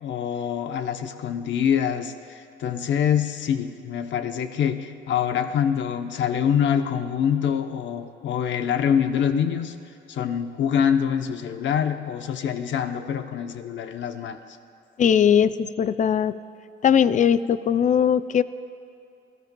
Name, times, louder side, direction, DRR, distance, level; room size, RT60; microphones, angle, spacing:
voice 1, 0.0-9.8 10.1-14.4, left 8 dB, 70° left, 8 dB, 0.8 m, -25 dB
voice 2, 15.0-16.3 16.8-18.4, left 8 dB, 40° left, 15 dB, 0.4 m, -19 dB
19.5 x 12.5 x 2.3 m, 2.7 s
cardioid pair, 90°, 20 cm